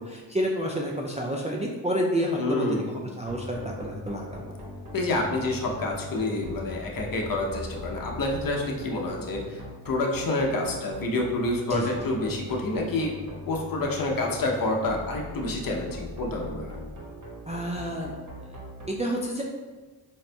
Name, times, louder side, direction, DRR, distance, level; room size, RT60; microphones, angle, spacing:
voice 1, 0.0-4.4 11.7-11.9 17.5-18.1 18.4-18.6 18.9-19.4, equal, 15° right, -2 dB, 0.3 m, -29 dB
voice 2, 2.3-2.9 4.9-13.1 13.5-16.8, left 2 dB, 50° left, 0 dB, 0.7 m, -28 dB
sound 1, 3.3-18.9, left 1 dB, 40° right, 1.1 m, -40 dB
4.0 x 2.5 x 2.2 m, 1.3 s
cardioid pair, 55°, 46 cm